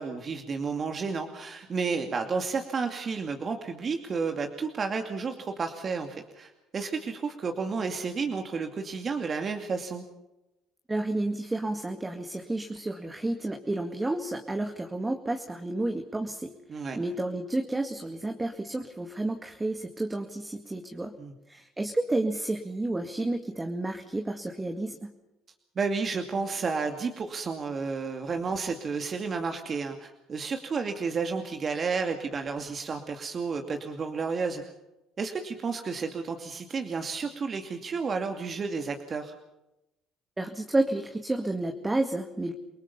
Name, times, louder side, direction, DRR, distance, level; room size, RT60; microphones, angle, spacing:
voice 1, 0.0-10.0 16.7-17.0 21.2-21.3 25.8-34.6 35.2-39.3, right 5 dB, 40° right, 5 dB, 2.5 m, -31 dB
voice 2, 10.9-21.2 21.5-25.1 40.4-42.5, right 2 dB, 15° right, 4 dB, 2.1 m, -31 dB
29.0 x 19.0 x 5.6 m, 0.92 s
supercardioid pair, 85°, 0 cm